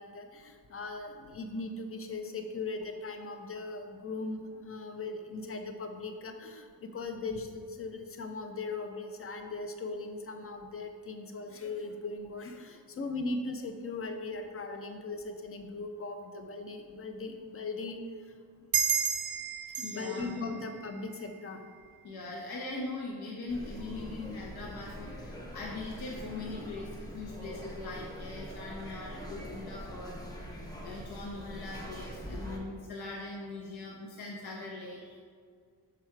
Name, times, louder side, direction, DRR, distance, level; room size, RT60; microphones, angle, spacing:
voice 1, 0.0-18.0 19.8-21.7, left 3 dB, 35° left, 5 dB, 0.6 m, -39 dB
sound 1, 18.7-21.8, right 7 dB, 65° right, 0.6 m, -33 dB
voice 2, 19.8-20.5 22.0-35.2, left 2 dB, 70° left, -2 dB, 0.9 m, -41 dB
sound 2, 23.5-32.6, equal, 10° left, 0.9 m, -43 dB
6.0 x 4.8 x 4.5 m, 2.1 s
wide cardioid pair, 150°, 39 cm